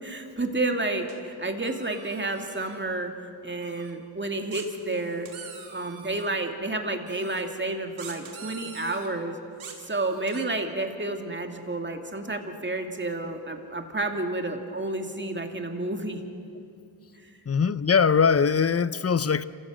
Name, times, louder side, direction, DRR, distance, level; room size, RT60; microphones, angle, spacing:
voice 1, 0.0-3.1 3.4-5.3 5.7-9.4 9.8-16.2, right 2 dB, 25° right, 4 dB, 2.5 m, -30 dB
sound 1, 1.1-1.2 1.6-2.8 3.6-3.9 4.5-6.3 7.1-7.4 8.0-9.1 9.6-10.4, right 6 dB, 90° right, 2.4 m, -44 dB
voice 2, 17.5-19.4, left 6 dB, 30° left, 17 dB, 0.7 m, -21 dB
27.0 x 16.0 x 6.3 m, 2.5 s
cardioid pair, 45°, 47 cm